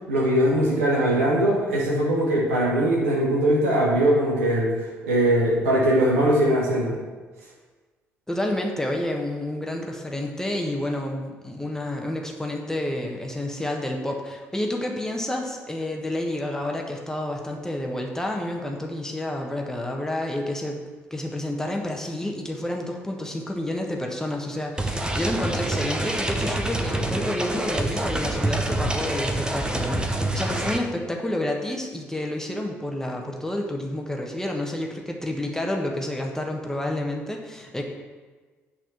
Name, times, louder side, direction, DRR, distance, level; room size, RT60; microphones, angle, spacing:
voice 1, 0.1-4.7 5.0-7.0, right 1 dB, 75° right, -3 dB, 1.7 m, -21 dB
voice 2, 8.3-20.8 21.1-37.8, left 1 dB, 5° left, 1 dB, 1.4 m, -29 dB
sound 1, 24.8-30.8, right 1 dB, 10° right, 0.9 m, -26 dB
9.1 x 4.3 x 7.1 m, 1.4 s
figure-of-eight pair, 45°, 7 cm